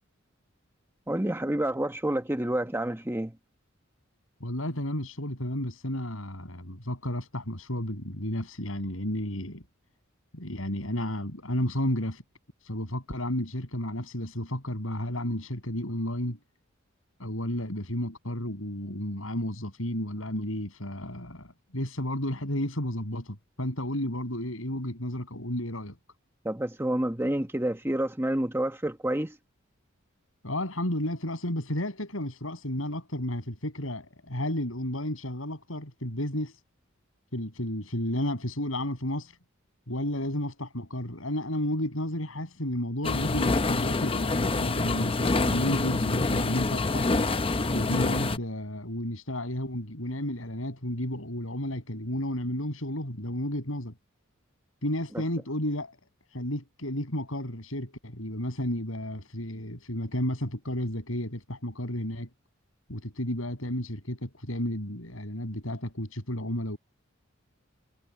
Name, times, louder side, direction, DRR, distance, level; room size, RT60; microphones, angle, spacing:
voice 1, 1.1-3.4 26.4-29.4, right 1 dB, 10° right, 1.2 m, -28 dB
voice 2, 4.4-9.6 10.3-12.2 12.6-16.4 17.2-26.0 30.4-36.6 37.3-39.4 39.9-47.1 47.7-53.9 54.8-56.0 56.3-62.3 62.9-66.8, left 1 dB, 80° left, 6.6 m, -32 dB
sound 1, 43.0-48.4, left 3 dB, 25° left, 0.6 m, -26 dB
head